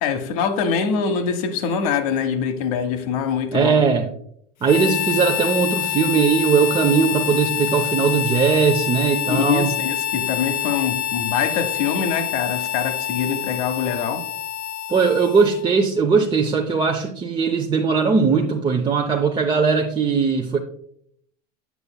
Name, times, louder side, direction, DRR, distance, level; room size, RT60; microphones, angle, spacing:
voice 1, 0.0-3.8 9.3-14.2, left 7 dB, 70° left, 0.8 m, -24 dB
voice 2, 3.5-4.1 4.6-9.7 14.9-20.6, right 5 dB, 25° right, 0.6 m, -19 dB
Harmonica, 4.6-15.7, left 11 dB, 45° left, 0.5 m, -26 dB
7.0 x 6.7 x 2.2 m
hypercardioid pair, 95°, 20 cm